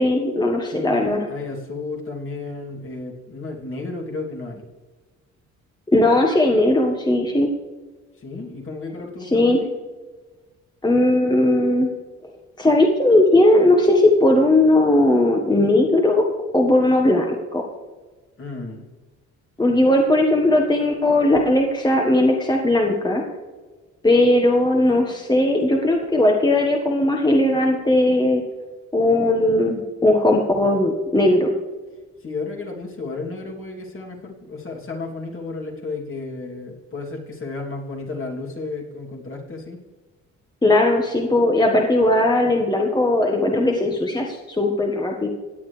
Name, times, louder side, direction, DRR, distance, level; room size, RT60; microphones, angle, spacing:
voice 1, 0.0-1.2 5.9-7.5 9.3-9.6 10.8-11.9 12.6-16.3 16.5-17.6 19.6-23.2 24.0-28.4 28.9-31.5 40.6-45.3, left 1 dB, 15° left, 1 dB, 1.4 m, -18 dB
voice 2, 0.7-4.6 8.1-9.7 18.4-18.9 32.2-39.8, left 3 dB, 45° left, -1 dB, 2.9 m, -33 dB
17.0 x 9.1 x 3.3 m, 1.3 s
cardioid pair, 90°, 30 cm